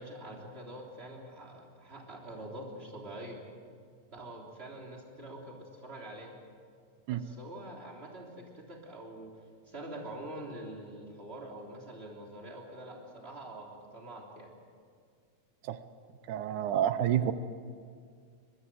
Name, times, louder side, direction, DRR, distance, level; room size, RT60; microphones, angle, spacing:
voice 1, 0.0-3.4 4.1-6.3 7.1-14.5, right 1 dB, 20° right, -1 dB, 3.4 m, -45 dB
voice 2, 16.3-17.3, right 11 dB, 75° right, 12 dB, 2.2 m, -29 dB
23.0 x 21.0 x 7.7 m, 2.1 s
omnidirectional pair, 3.8 m